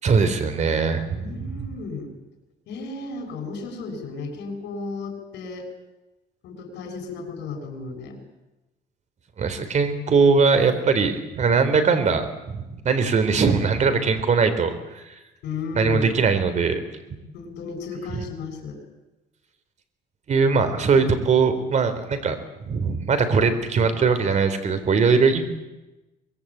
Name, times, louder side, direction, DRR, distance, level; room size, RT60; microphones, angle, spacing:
voice 1, 0.0-1.3 9.4-15.1 15.8-16.8 18.1-18.2 20.3-22.4 22.6-25.4, right 5 dB, 40° right, 10 dB, 3.7 m, -21 dB
voice 2, 1.2-2.1 2.7-5.7 6.4-8.2 15.4-16.1 17.3-18.8, left 4 dB, 85° left, 4 dB, 6.9 m, -34 dB
24.0 x 22.0 x 8.8 m, 1.0 s
cardioid pair, 135°, 18 cm